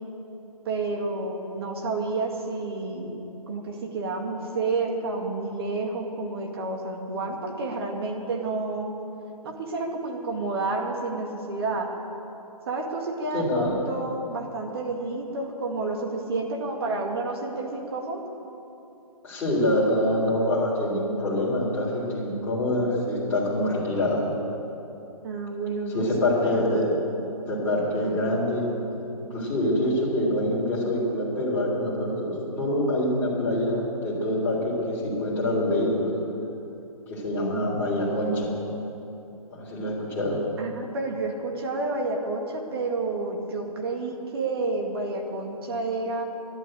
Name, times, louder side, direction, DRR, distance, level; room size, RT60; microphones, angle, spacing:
voice 1, 0.7-3.1 3.5-8.9 9.4-11.9 12.7-18.2 25.2-26.1 26.4-26.9 40.6-46.2, right 3 dB, 40° right, 2 dB, 2.0 m, -30 dB
voice 2, 13.3-13.8 19.2-24.2 25.9-26.8 27.5-28.7 29.3-36.1 37.1-38.5 39.5-40.4, left 1 dB, 10° left, -8 dB, 3.5 m, -25 dB
12.0 x 11.0 x 9.0 m, 2.9 s
hypercardioid pair, 160°, 20 cm